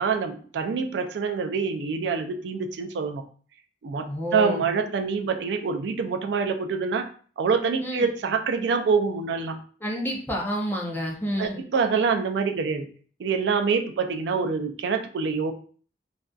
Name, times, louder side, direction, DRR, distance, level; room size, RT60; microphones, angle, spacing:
voice 1, 0.0-3.2 3.8-7.1 7.4-9.6 11.4-12.9 13.2-15.5, right 5 dB, 80° right, 6 dB, 0.3 m, -26 dB
voice 2, 4.0-4.6 7.8-8.0 9.8-11.6, equal, 10° left, -1 dB, 0.4 m, -29 dB
2.5 x 2.3 x 2.2 m, 0.43 s
head